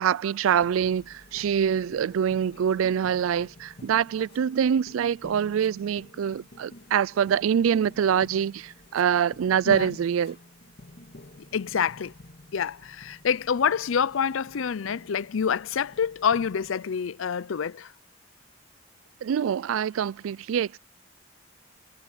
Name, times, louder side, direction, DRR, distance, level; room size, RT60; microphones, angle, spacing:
voice 1, 0.0-10.4 19.2-20.8, right 8 dB, 90° right, 0.3 m, -25 dB
sound 1, 0.6-16.7, left 1 dB, 50° left, 2.6 m, -50 dB
voice 2, 11.5-12.1 12.5-17.9, left 7 dB, 80° left, 0.5 m, -27 dB
head